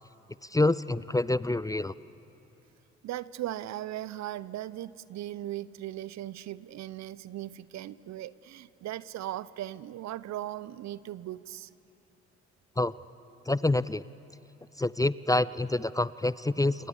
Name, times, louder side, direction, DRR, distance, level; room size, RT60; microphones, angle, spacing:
voice 1, 0.5-1.9 12.8-12.9 13.5-14.0 14.8-16.9, left 2 dB, 10° left, 18 dB, 0.6 m, -27 dB
voice 2, 3.0-11.7, right 13 dB, 60° right, 19 dB, 0.7 m, -38 dB
29.5 x 26.5 x 7.1 m, 2.9 s
hypercardioid pair, 45°, 32 cm